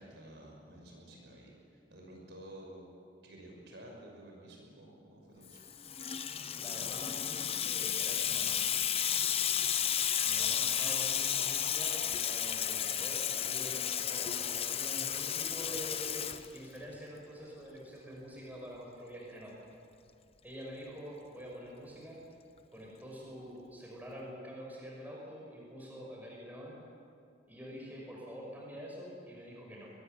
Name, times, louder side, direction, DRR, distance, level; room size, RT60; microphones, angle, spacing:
voice 1, 0.0-2.9 3.2-5.7, right 1 dB, 60° right, 0 dB, 6.0 m, -52 dB
Water tap faucet / Sink (filling or washing), 5.5-17.0, left 9 dB, 30° left, 0.8 m, -33 dB
voice 2, 6.6-8.6 10.2-16.1 16.5-19.5 20.4-22.2 22.7-26.8 27.5-29.9, equal, 10° right, -3 dB, 5.8 m, -46 dB
23.0 x 20.0 x 9.4 m, 2.4 s
head